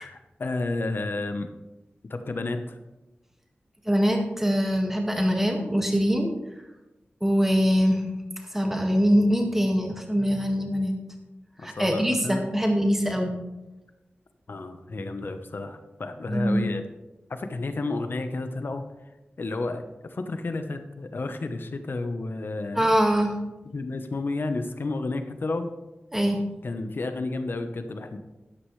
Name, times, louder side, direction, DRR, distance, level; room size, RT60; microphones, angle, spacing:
voice 1, 0.0-1.5 2.1-2.8 11.6-12.5 14.5-16.8 17.3-18.8 19.4-22.9 23.7-25.7 26.6-28.2, left 2 dB, 60° left, 7 dB, 1.0 m, -31 dB
voice 2, 3.9-6.3 7.2-8.0 8.5-11.0 11.6-13.4 16.3-16.7 22.8-23.3 26.1-26.4, equal, 10° right, 2 dB, 1.9 m, -23 dB
13.0 x 9.8 x 3.3 m, 1.0 s
wide cardioid pair, 85°, 4 cm